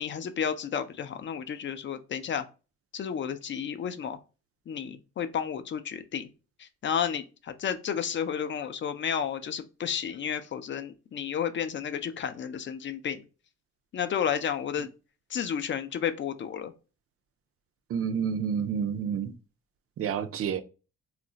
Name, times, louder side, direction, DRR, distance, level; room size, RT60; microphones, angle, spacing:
voice 1, 0.0-2.4 2.9-4.2 4.7-6.3 6.6-13.2 13.9-14.9 15.3-16.7, left 8 dB, 40° left, 0.4 m, -32 dB
voice 2, 17.9-19.3 20.0-20.6, right 7 dB, 50° right, 0.5 m, -29 dB
2.4 x 2.0 x 3.8 m
cardioid pair, 90°, 30 cm